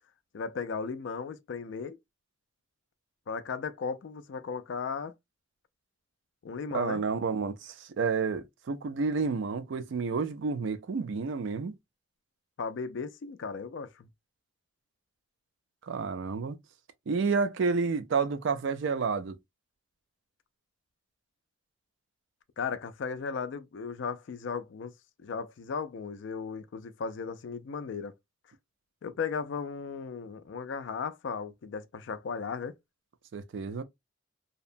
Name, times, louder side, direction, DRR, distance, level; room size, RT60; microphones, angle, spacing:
voice 1, 0.3-2.0 3.3-5.1 6.4-7.0 12.6-14.1 22.6-24.9 25.2-28.1 29.0-32.7, left 5 dB, 60° left, 0.3 m, -36 dB
voice 2, 6.7-11.7 15.8-16.6 17.1-19.4 33.3-33.8, right 4 dB, 60° right, 0.4 m, -30 dB
2.7 x 2.1 x 2.5 m
head